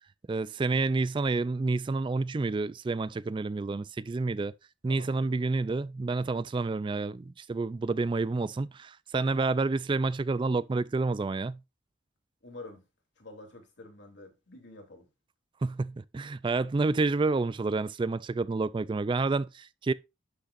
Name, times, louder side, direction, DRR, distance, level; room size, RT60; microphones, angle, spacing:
voice 1, 0.3-4.5 4.8-11.6 15.6-19.9, right 3 dB, 25° right, 0.3 m, -29 dB
voice 2, 4.9-5.5 12.4-12.8 13.2-15.1, left 2 dB, 65° left, 2.9 m, -48 dB
11.5 x 6.5 x 2.5 m
head